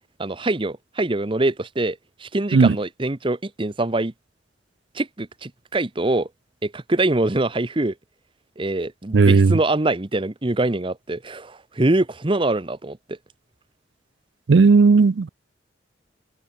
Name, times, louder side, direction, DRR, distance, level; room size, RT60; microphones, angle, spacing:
voice 1, 0.2-4.1 4.9-6.3 6.6-7.9 8.6-13.2, right 2 dB, 30° right, 0.9 m, -24 dB
voice 2, 9.1-9.6 14.5-15.3, right 4 dB, 70° right, 0.5 m, -14 dB
head